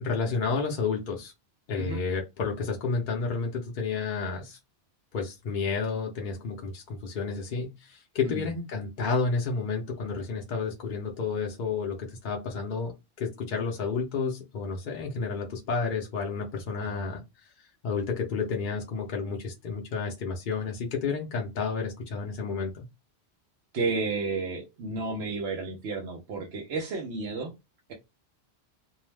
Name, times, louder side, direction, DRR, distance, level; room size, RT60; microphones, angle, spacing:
voice 1, 0.0-1.3 1.7-4.6 5.1-17.2 17.8-22.9, left 4 dB, 55° left, 0.7 m, -31 dB
voice 2, 23.7-27.5, right 3 dB, 75° right, 0.9 m, -32 dB
2.6 x 2.0 x 3.2 m
omnidirectional pair, 1.1 m